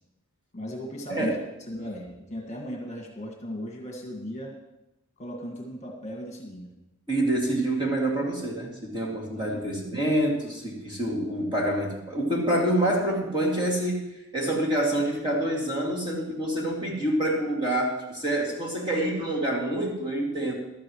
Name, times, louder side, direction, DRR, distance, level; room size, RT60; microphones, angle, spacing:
voice 1, 0.5-1.4 1.7-4.5 5.2-6.7 9.4-9.6, equal, 30° left, 0 dB, 1.7 m, -37 dB
voice 2, 7.1-14.1 14.3-20.5, right 1 dB, 20° right, -3 dB, 2.4 m, -27 dB
15.0 x 12.5 x 3.1 m, 0.93 s
head